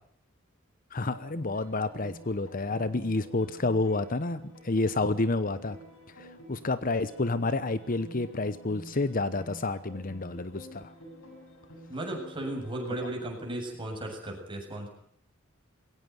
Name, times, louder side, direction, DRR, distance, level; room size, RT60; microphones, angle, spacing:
voice 1, 0.9-5.8 6.2-10.9, left 2 dB, 40° left, 14 dB, 0.9 m, -29 dB
sound 1, 1.0-12.9, equal, 85° left, 7.7 m, -49 dB
voice 2, 11.9-14.9, right 1 dB, 25° right, 1 dB, 7.7 m, -35 dB
22.0 x 17.5 x 9.5 m, 0.63 s
head